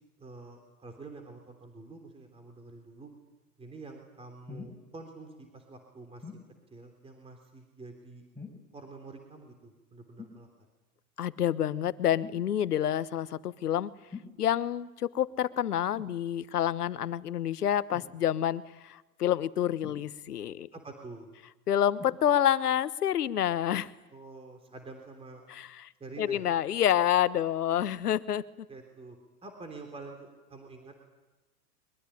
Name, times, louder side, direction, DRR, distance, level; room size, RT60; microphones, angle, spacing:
voice 1, 0.2-3.1 3.6-6.3 6.7-8.2 8.7-10.5 20.7-21.3 24.1-25.4 26.0-26.5 28.7-29.2 29.4-30.9, right 3 dB, 10° right, 4 dB, 3.4 m, -47 dB
sound 1, 4.5-4.8 6.2-6.5 8.3-8.7 10.2-10.4 12.2-12.5 14.1-14.4 15.9-16.2 17.9-18.1 19.8-20.4 21.9-22.2 23.0-23.1, left 4 dB, 5° left, 6.4 m, -45 dB
voice 2, 11.2-13.9 14.4-20.7 21.7-23.9 25.5-25.9 26.2-28.4, left 10 dB, 80° left, 16 dB, 1.2 m, -28 dB
23.0 x 22.0 x 10.0 m, 1.1 s
hypercardioid pair, 110°, 46 cm